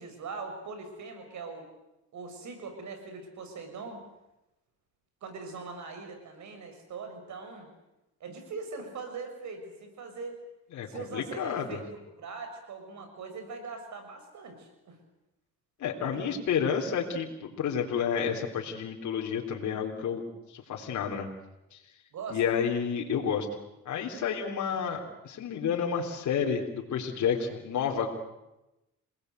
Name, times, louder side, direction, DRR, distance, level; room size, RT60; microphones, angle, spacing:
voice 1, 0.0-1.7 2.1-4.0 5.2-7.7 8.2-10.4 10.9-15.0 16.0-16.2 22.1-22.4 24.6-25.0, right 4 dB, 70° right, 6 dB, 6.6 m, -41 dB
voice 2, 10.7-11.8 15.8-20.2 20.5-21.3 21.7-21.8 22.3-23.5 23.9-28.1, left 7 dB, 70° left, 0 dB, 3.6 m, -30 dB
28.0 x 19.5 x 8.1 m, 0.94 s
cardioid pair, 90°, 30 cm